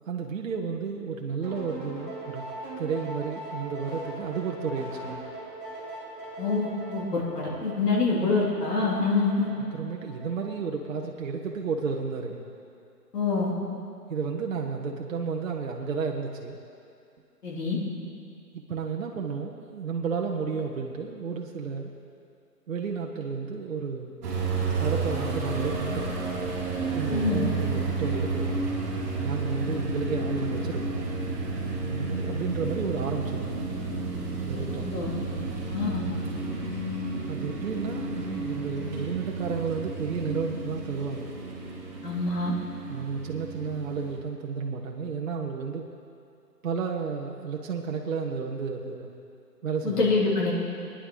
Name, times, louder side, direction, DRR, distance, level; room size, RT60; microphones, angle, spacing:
voice 1, 0.1-2.4 2.8-5.2 9.7-12.5 14.1-16.6 18.5-21.9 22.7-24.2 24.8-26.2 26.9-28.5 29.2-30.9 31.9-33.5 34.4-34.9 37.3-41.3 42.9-45.9 46.6-49.1 49.6-50.2, right 5 dB, 55° right, 0 dB, 1.1 m, -32 dB
sound 1, 1.4-10.8, right 2 dB, 5° left, 0.8 m, -40 dB
voice 2, 6.4-9.5 13.1-13.5 17.4-17.8 27.1-27.4 34.9-35.1 35.7-35.9 42.0-42.5 49.8-50.5, left 3 dB, 70° left, -4 dB, 3.3 m, -25 dB
sound 2, 24.2-44.2, right 3 dB, 25° right, 2.5 m, -31 dB
23.0 x 10.0 x 3.9 m, 2.5 s
hypercardioid pair, 165°, 49 cm